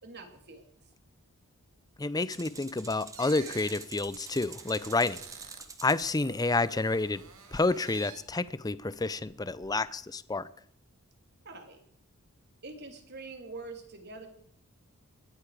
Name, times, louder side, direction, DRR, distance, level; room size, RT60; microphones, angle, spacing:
voice 1, 0.0-0.6 11.4-11.8 12.6-14.3, right 3 dB, 50° right, 3.0 m, -44 dB
voice 2, 2.0-5.2 5.8-7.2 7.5-10.5, left 3 dB, 15° left, 0.5 m, -29 dB
sound 1, 2.3-6.1, right 4 dB, 15° right, 1.3 m, -47 dB
sound 2, 3.1-5.7 6.0-8.4 8.9-9.7, right 7 dB, 65° right, 2.6 m, -49 dB
20.5 x 14.0 x 4.9 m
head